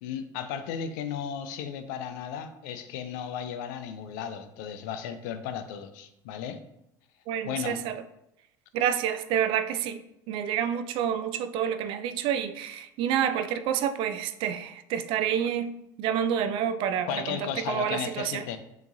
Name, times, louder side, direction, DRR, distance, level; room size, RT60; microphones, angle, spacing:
voice 1, 0.0-6.6 7.4-7.9 17.0-18.6, left 8 dB, 70° left, 10 dB, 0.5 m, -35 dB
voice 2, 7.3-8.0 8.7-10.0 10.3-18.4, right 9 dB, 55° right, 11 dB, 0.4 m, -28 dB
6.8 x 2.9 x 2.6 m, 0.82 s
hypercardioid pair, 75°, 10 cm